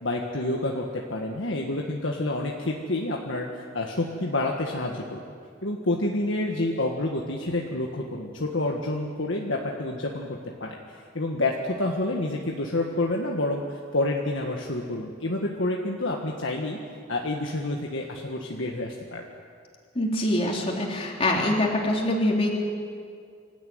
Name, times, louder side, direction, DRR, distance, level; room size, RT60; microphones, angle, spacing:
voice 1, 0.0-5.2 5.6-10.8 11.1-16.8 17.1-19.2, left 2 dB, 70° left, 0 dB, 1.6 m, -28 dB
voice 2, 19.9-22.5, left 1 dB, 30° left, -1 dB, 3.4 m, -24 dB
25.5 x 13.5 x 9.4 m, 2.2 s
head